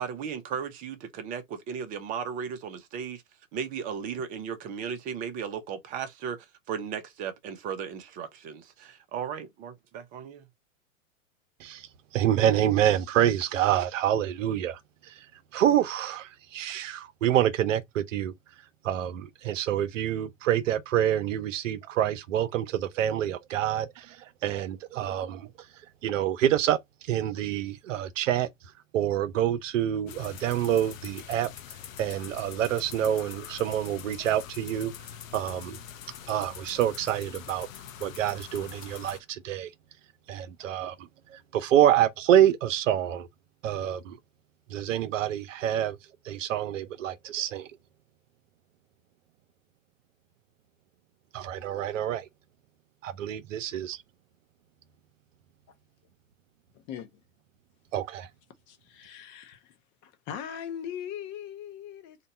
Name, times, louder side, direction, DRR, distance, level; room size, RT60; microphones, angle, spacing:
voice 1, 0.0-3.2 3.5-10.5, right 7 dB, 20° right, 0.5 m, -36 dB
voice 2, 12.1-14.8 15.5-18.3 18.8-23.9 24.4-25.5 26.0-26.8 27.1-28.5 28.9-31.5 32.0-34.9 35.3-35.8 36.3-37.7 38.0-39.7 40.3-40.9 41.5-43.3 43.6-44.2 44.7-46.0 46.3-47.7 51.3-52.2 53.0-53.9 57.9-58.3, right 11 dB, 65° right, 0.6 m, -26 dB
sound 1, 30.1-39.2, left 9 dB, 70° left, 0.7 m, -44 dB
voice 3, 58.7-59.6 60.0-62.2, left 9 dB, 30° left, 0.6 m, -39 dB
2.8 x 2.2 x 4.0 m
hypercardioid pair, 125°, 41 cm